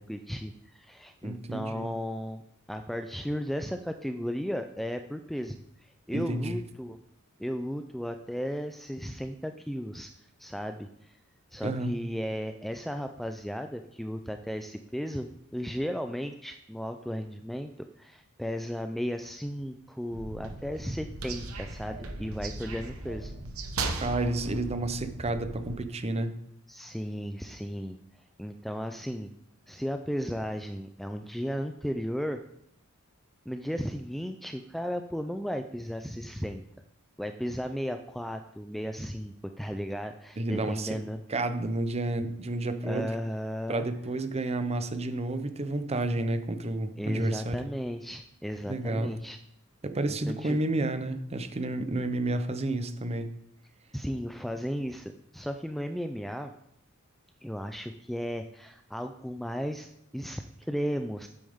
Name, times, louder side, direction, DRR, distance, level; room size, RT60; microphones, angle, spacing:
voice 1, 0.0-2.4 2.7-7.0 7.4-10.1 10.4-11.1 11.5-17.7 18.0-23.3 26.7-28.0 28.4-29.3 29.7-32.4 33.5-36.6 37.2-41.2 42.8-43.9 47.0-49.4 50.3-50.6 53.9-56.5 57.4-61.3, equal, ahead, 6 dB, 0.3 m, -35 dB
voice 2, 1.2-1.9 6.1-6.6 11.6-11.9 24.0-26.4 40.4-41.0 41.3-43.1 43.7-47.7 48.7-49.1 49.8-53.3, right 2 dB, 30° right, 10 dB, 0.7 m, -30 dB
sound 1, 20.1-25.8, right 3 dB, 80° right, 1.1 m, -37 dB
8.9 x 8.5 x 3.6 m, 0.75 s
head